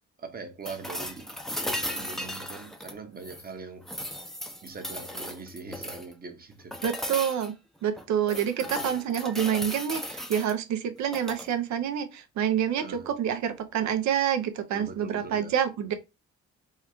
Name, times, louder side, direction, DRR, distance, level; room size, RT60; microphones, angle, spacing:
voice 1, 0.2-1.3 1.6-3.9 4.6-6.8 8.6-8.9 12.7-13.1 14.7-15.5, right 4 dB, 30° right, 0.8 m, -42 dB
sound 1, 0.6-3.5 3.8-6.1 6.7-7.5 8.0-10.5 11.0-11.5 13.5-13.6, equal, ahead, 0.5 m, -36 dB
voice 2, 6.8-7.5 7.8-15.9, right 9 dB, 70° right, 0.6 m, -27 dB
3.6 x 2.2 x 3.0 m
cardioid pair, 90°, 30 cm